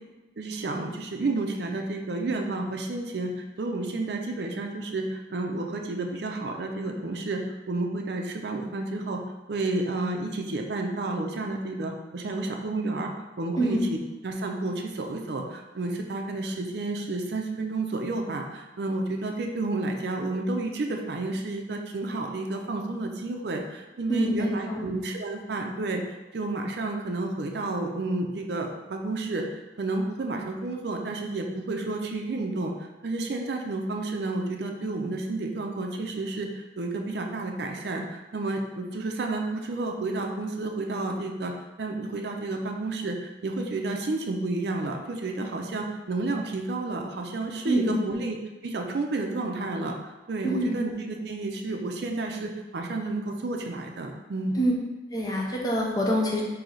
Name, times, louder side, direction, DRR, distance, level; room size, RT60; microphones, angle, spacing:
voice 1, 0.4-3.3 3.6-7.4 7.7-9.2 9.5-13.1 13.4-13.8 14.2-26.0 26.3-29.4 29.8-32.7 33.0-36.5 36.8-41.5 41.8-48.4 48.6-54.6, right 2 dB, 65° right, 2 dB, 0.5 m, -31 dB
voice 2, 24.1-24.9 47.6-48.0 50.4-50.7 54.6-54.7 55.1-56.4, equal, 20° left, -2 dB, 0.6 m, -26 dB
3.2 x 2.7 x 3.9 m, 1.1 s
head